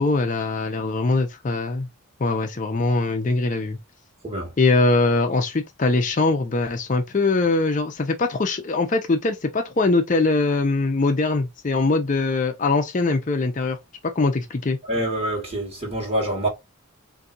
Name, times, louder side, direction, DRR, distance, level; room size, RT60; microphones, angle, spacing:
voice 1, 0.0-1.9 2.2-3.8 4.6-13.8 14.2-14.8, left 3 dB, 35° left, 0.5 m, -22 dB
voice 2, 14.8-16.5, right 1 dB, 30° right, 1.5 m, -26 dB
4.1 x 2.6 x 2.4 m
head